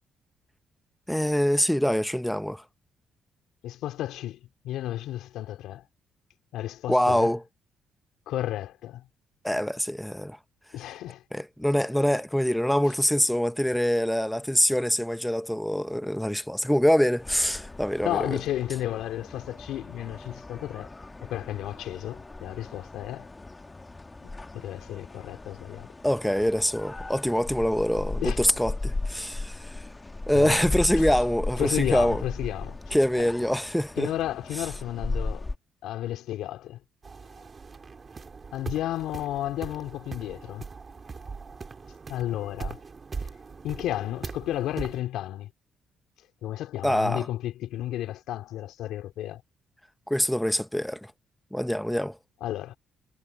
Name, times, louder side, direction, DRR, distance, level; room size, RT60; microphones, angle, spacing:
voice 1, 1.1-2.6 6.9-7.4 9.4-10.4 11.3-18.4 26.0-29.9 30.3-32.2 32.9-34.1 46.8-47.3 50.1-51.1 51.5-52.2, equal, 5° left, 0.7 m, -25 dB
voice 2, 3.6-5.8 6.5-7.3 8.3-9.0 10.7-11.2 12.9-13.0 18.0-20.9 21.2-23.3 24.2-24.3 24.5-25.9 28.2-28.4 30.3-31.1 31.6-33.3 34.0-35.5 35.8-36.8 38.5-40.7 42.1-42.8 43.2-43.3 43.6-45.5 46.4-49.4 52.4-52.8, left 13 dB, 85° left, 3.4 m, -33 dB
sound 1, 17.2-35.6, left 2 dB, 20° left, 1.8 m, -37 dB
sound 2, 37.0-45.0, right 4 dB, 35° right, 2.9 m, -40 dB
cardioid pair, 90°, 0 cm